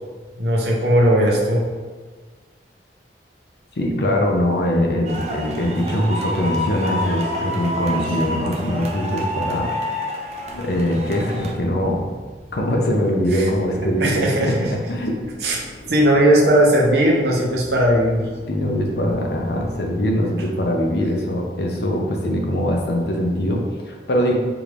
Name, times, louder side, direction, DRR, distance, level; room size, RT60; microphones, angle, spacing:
voice 1, 0.4-1.7 13.3-13.5 13.8-14.7 15.4-15.6 15.9-18.3, right 1 dB, 65° right, -2 dB, 0.8 m, -17 dB
voice 2, 3.8-9.8 10.6-12.1 12.5-15.1 18.5-24.3, equal, 65° left, 1 dB, 0.7 m, -22 dB
sound 1, 5.0-11.5, equal, 35° right, 0.5 m, -28 dB
sound 2, 10.4-20.0, equal, 30° left, 0.6 m, -40 dB
4.8 x 2.5 x 3.3 m, 1.4 s
head